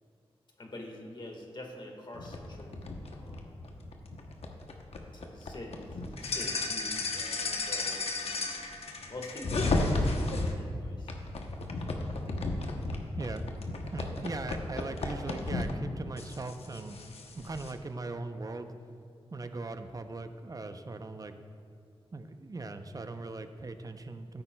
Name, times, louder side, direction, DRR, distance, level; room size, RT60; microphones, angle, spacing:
voice 1, 0.6-2.7 3.0-3.7 5.1-8.6 9.1-11.1 11.8-12.2, left 1 dB, 50° left, 1 dB, 1.6 m, -46 dB
sound 1, 2.1-10.5 11.1-15.7 16.2-17.7, left 2 dB, 75° left, 0.8 m, -34 dB
voice 2, 13.9-17.0 17.4-18.7 19.3-21.4 22.1-24.4, right 3 dB, 35° right, 8 dB, 0.6 m, -39 dB
14.0 x 8.5 x 2.3 m, 2.4 s
cardioid pair, 60°, 11 cm